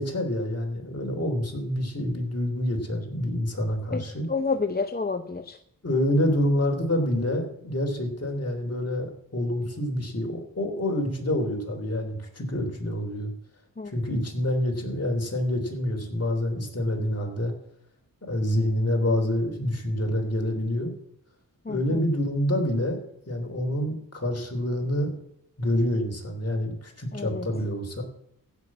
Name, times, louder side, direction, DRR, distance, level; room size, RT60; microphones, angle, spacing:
voice 1, 0.0-4.2 5.8-13.3 13.9-17.5 18.3-20.9 21.7-23.0 23.3-25.1 25.6-28.0, left 1 dB, 40° left, 2 dB, 3.3 m, -27 dB
voice 2, 4.3-5.6 13.8-13.9 21.6-22.0 27.1-27.5, left 4 dB, 25° left, 8 dB, 0.7 m, -29 dB
15.5 x 6.0 x 7.4 m, 0.76 s
wide cardioid pair, 75°, 36 cm